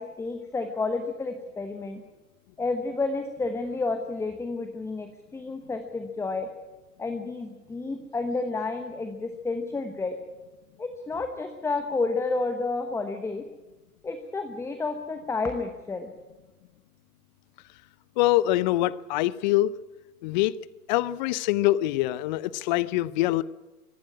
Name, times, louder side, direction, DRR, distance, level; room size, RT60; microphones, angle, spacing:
voice 1, 0.0-2.0 2.6-6.5 7.0-10.2 10.8-13.4 14.0-16.1, left 3 dB, 5° left, 7 dB, 1.0 m, -30 dB
voice 2, 18.2-19.7 20.2-20.5 20.9-23.4, left 16 dB, 30° left, 19 dB, 0.6 m, -24 dB
24.0 x 12.0 x 9.7 m, 1.1 s
figure-of-eight pair, 115°, 46 cm